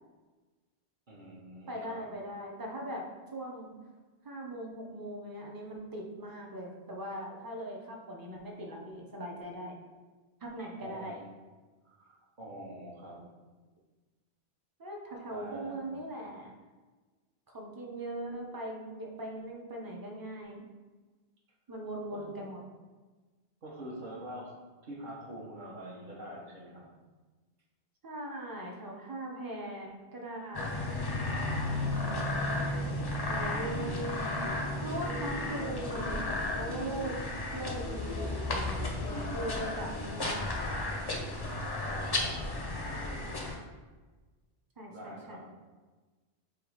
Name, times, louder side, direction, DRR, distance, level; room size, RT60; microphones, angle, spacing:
voice 1, 1.1-2.0 10.8-11.3 11.8-13.2 15.3-15.9 22.1-22.3 23.6-24.6 24.8-26.9 41.8-42.6 44.9-45.4, right 1 dB, 50° right, -3 dB, 1.1 m, -45 dB
voice 2, 1.7-3.1 3.3-3.7 4.2-9.7 10.4-11.2 14.8-16.5 17.5-20.6 21.7-22.6 28.0-30.8 33.2-34.3 34.8-37.1 37.5-40.7 44.8-45.4, right 1 dB, 25° right, 0 dB, 0.6 m, -40 dB
sound 1, 30.5-43.6, left 2 dB, 35° left, 0.4 m, -33 dB
3.6 x 3.1 x 4.8 m, 1.3 s
omnidirectional pair, 1.1 m